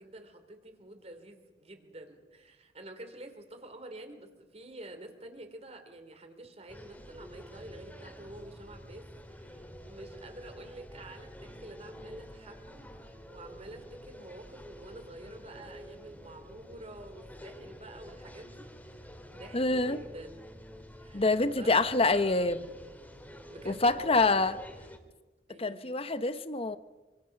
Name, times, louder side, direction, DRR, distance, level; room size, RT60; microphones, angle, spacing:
voice 1, 0.0-18.7 19.3-20.4 21.0-22.5 23.5-24.5 25.5-25.9, right 1 dB, 35° right, 7 dB, 3.2 m, -49 dB
sound 1, 6.7-25.0, equal, 10° left, 2.6 m, -48 dB
voice 2, 19.5-20.0 21.1-22.7 23.7-24.6 25.6-26.8, left 3 dB, 35° left, 12 dB, 1.0 m, -26 dB
26.5 x 25.0 x 6.0 m, 1.2 s
head